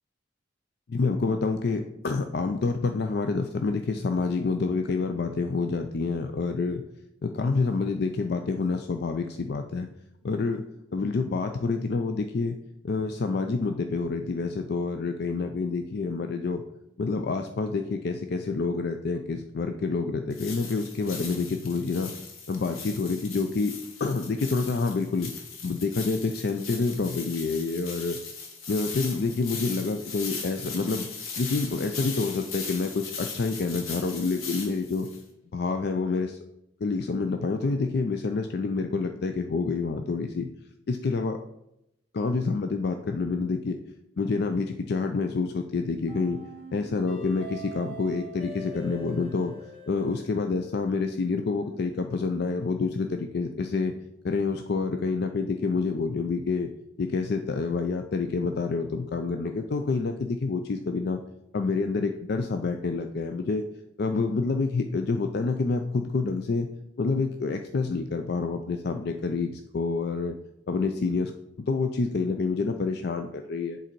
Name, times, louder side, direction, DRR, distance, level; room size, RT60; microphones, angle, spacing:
voice 1, 0.9-6.8 7.2-9.9 10.2-10.6 10.9-12.6 12.8-16.6 17.0-22.1 22.5-23.7 24.0-25.3 25.6-28.2 28.7-31.1 31.4-35.1 35.5-36.4 36.8-40.5 40.9-41.4 42.1-43.8 44.2-46.4 46.7-49.5 49.9-53.9 54.2-56.7 57.0-61.2 61.5-63.6 64.0-66.7 67.0-70.3 70.7-71.3 71.6-73.8, left 4 dB, 50° left, 6 dB, 0.4 m, -28 dB
sound 1, 20.3-35.2, left 5 dB, 90° left, 1.3 m, -39 dB
sound 2, 46.1-51.1, right 2 dB, 35° left, 1.2 m, -42 dB
7.5 x 3.9 x 4.5 m, 0.82 s
head